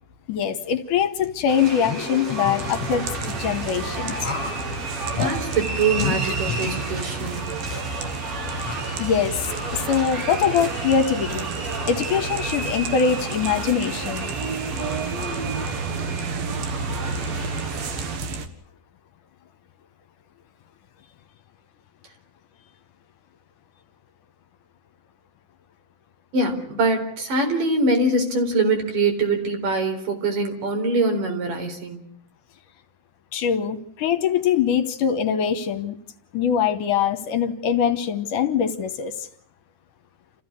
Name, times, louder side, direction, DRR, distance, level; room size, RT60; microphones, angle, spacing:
voice 1, 0.3-3.0 3.4-4.3 9.0-9.4 9.7-11.5 11.9-14.3 33.3-36.0 36.3-39.1, left 7 dB, 70° left, 10 dB, 2.5 m, -23 dB
sound 1, 1.5-18.2, right 3 dB, 50° right, 5.1 m, -32 dB
sound 2, 1.8-3.3 4.2-4.6 5.2-5.3 6.0-7.2 7.7-7.8 8.5-9.4, left 7 dB, 45° left, 3.3 m, -32 dB
sound 3, 2.6-18.5, right 4 dB, 85° right, 3.5 m, -31 dB
voice 2, 5.1-7.5 26.3-32.0, right 2 dB, 65° right, 4 dB, 5.7 m, -23 dB
28.5 x 15.0 x 9.8 m, 0.66 s
omnidirectional pair, 4.0 m